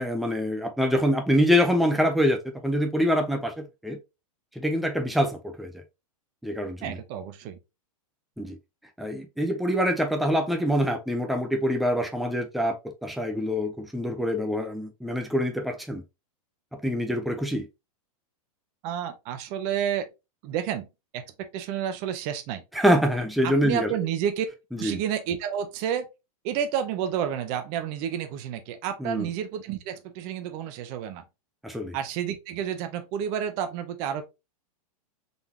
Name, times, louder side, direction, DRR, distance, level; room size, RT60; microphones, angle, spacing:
voice 1, 0.0-4.0 4.6-5.8 6.4-7.0 8.4-8.6 9.0-12.8 13.0-16.0 16.7-17.7 22.7-23.9 24.7-25.0 29.0-29.3 31.6-32.0, equal, ahead, 0.5 m, -25 dB
voice 2, 6.8-7.6 18.8-20.1 20.4-20.9 21.1-22.6 23.4-24.5 24.8-26.1 26.4-31.2 31.9-34.2, right 9 dB, 35° right, 0.7 m, -30 dB
3.9 x 2.9 x 3.4 m
supercardioid pair, 150°, 18 cm